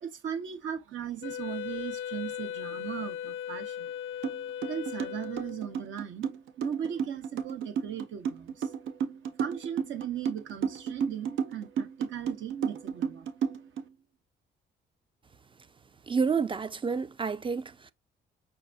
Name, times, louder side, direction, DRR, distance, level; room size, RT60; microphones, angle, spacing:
voice 1, 0.0-3.9 4.7-6.3 6.6-8.7 9.4-13.3, right 9 dB, 75° right, 1.1 m, -37 dB
Wind instrument woodwind instrument, 1.2-5.8, left 9 dB, 80° left, 0.5 m, -38 dB
sound 1, 4.2-4.4 4.6-13.8, right 7 dB, 90° right, 0.7 m, -32 dB
voice 2, 16.1-17.9, right 5 dB, 25° right, 0.4 m, -29 dB
5.7 x 2.5 x 2.6 m
cardioid pair, 90°, 20 cm